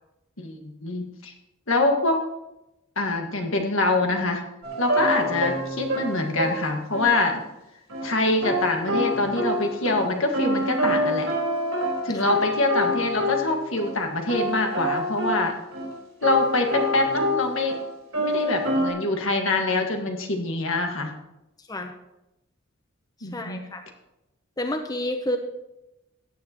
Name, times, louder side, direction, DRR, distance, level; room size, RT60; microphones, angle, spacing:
voice 1, 0.4-1.3 1.7-2.2 3.0-4.4 4.8-7.4 8.0-11.3 12.0-15.5 16.2-17.7 18.2-21.1 23.2-23.6, left 2 dB, 75° left, 3 dB, 1.7 m, -25 dB
sound 1, 4.6-7.1 7.9-8.1 8.4-13.9 14.3-15.5 15.7-15.9 16.2-17.9 18.1-18.9, equal, 85° right, 3.7 m, -27 dB
voice 2, 23.3-23.8 24.6-25.4, left 1 dB, 20° left, 6 dB, 0.7 m, -29 dB
15.5 x 9.6 x 3.0 m, 0.90 s
head